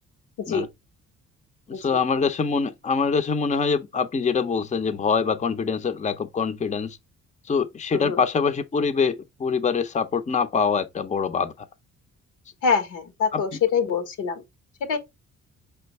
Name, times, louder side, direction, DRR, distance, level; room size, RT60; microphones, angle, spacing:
voice 1, 1.8-7.0 7.5-11.5 13.3-13.4, left 5 dB, 25° left, 0.6 m, -24 dB
voice 2, 7.9-8.2 12.6-14.4 14.9-15.0, left 6 dB, 85° left, 1.1 m, -24 dB
5.1 x 3.4 x 3.0 m
cardioid pair, 90°, 30 cm